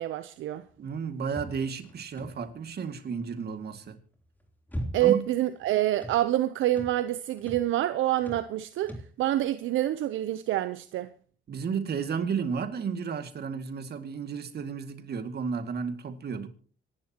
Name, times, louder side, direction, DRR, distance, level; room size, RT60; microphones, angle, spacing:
voice 1, 0.0-0.6 4.9-8.9 9.2-11.1, right 13 dB, 80° right, 0.7 m, -27 dB
voice 2, 0.8-4.0 5.0-5.2 11.5-16.5, right 6 dB, 55° right, 2.1 m, -33 dB
sound 1, 1.3-2.6 4.1-5.3 5.6-6.2 6.7-7.0 7.4-7.7 8.2-8.5 8.8-9.2, equal, 10° left, 3.3 m, -40 dB
26.0 x 11.5 x 2.9 m
cardioid pair, 90°, 20 cm